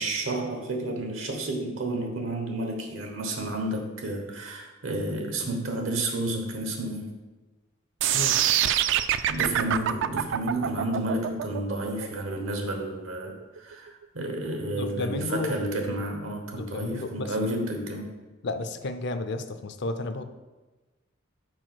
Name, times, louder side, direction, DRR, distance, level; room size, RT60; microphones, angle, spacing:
voice 1, 0.0-7.2 9.3-18.1, right 1 dB, 85° right, 3 dB, 1.2 m, -31 dB
sound 1, 8.0-14.0, right 11 dB, 65° right, 0.3 m, -25 dB
voice 2, 14.7-15.7 16.5-17.5 18.4-20.2, left 2 dB, 60° left, 9 dB, 0.5 m, -32 dB
4.7 x 4.6 x 6.0 m, 1.2 s
head